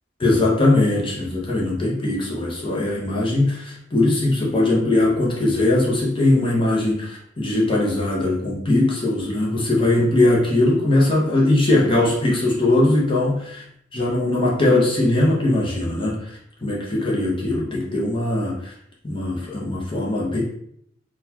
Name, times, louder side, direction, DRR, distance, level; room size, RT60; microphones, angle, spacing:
voice 1, 0.2-13.6 13.9-16.3 16.6-18.7 19.0-20.5, left 2 dB, 25° left, -4 dB, 0.7 m, -20 dB
3.8 x 2.2 x 2.8 m, 0.70 s
head